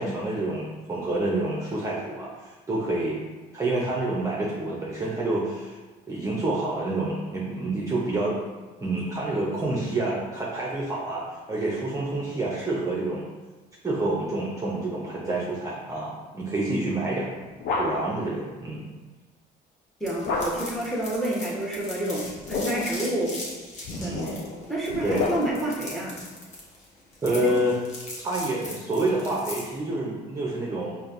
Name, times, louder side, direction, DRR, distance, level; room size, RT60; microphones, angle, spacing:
voice 1, 0.0-3.2 3.5-5.8 6.1-8.4 8.8-13.2 13.8-17.3 17.8-18.9 23.9-24.4 25.0-25.2 27.2-27.8 28.2-31.0, right 2 dB, 20° right, -5 dB, 0.6 m, -28 dB
sound 1, 17.1-18.3 20.2-20.9 22.2-23.1 23.8-25.8, left 3 dB, 75° left, 0.5 m, -31 dB
voice 2, 20.0-23.3 23.9-24.4 24.7-26.2 27.3-27.5, right 1 dB, ahead, -3 dB, 0.9 m, -29 dB
sound 2, 20.1-29.8, left 2 dB, 45° left, 1.0 m, -40 dB
5.0 x 2.6 x 2.5 m, 1.3 s
cardioid pair, 110°, 17 cm